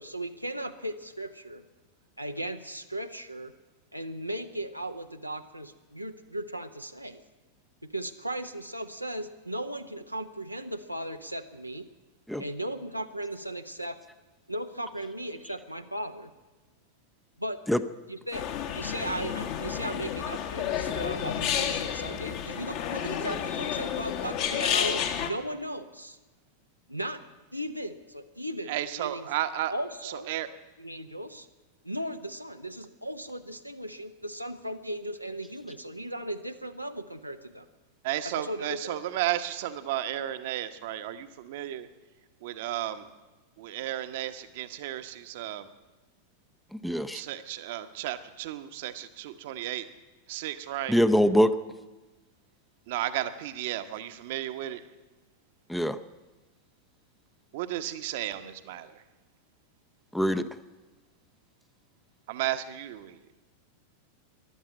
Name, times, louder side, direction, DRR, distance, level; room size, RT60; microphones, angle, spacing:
voice 1, 0.0-1.6 2.2-3.5 3.9-7.2 7.9-11.8 12.4-14.0 14.5-16.3 17.4-17.6 18.1-18.5 18.7-26.2 26.9-27.2 27.5-29.3 29.7-30.3 30.8-31.5 31.8-37.7 38.2-39.0, right 1 dB, 90° right, 6 dB, 0.8 m, -37 dB
sound 1, 18.3-25.3, left 9 dB, 45° left, 1.4 m, -31 dB
voice 2, 28.7-29.7 30.0-30.5 38.0-41.9 42.4-43.1 43.6-45.7 47.1-49.9 50.3-51.0 52.9-54.8 57.5-59.0 62.3-63.2, right 13 dB, 50° right, 10 dB, 1.0 m, -33 dB
voice 3, 46.7-47.2 50.9-51.5 55.7-56.0 60.1-60.5, equal, ahead, 11 dB, 0.6 m, -23 dB
14.0 x 11.5 x 8.7 m, 1.2 s
figure-of-eight pair, 90°, 0 cm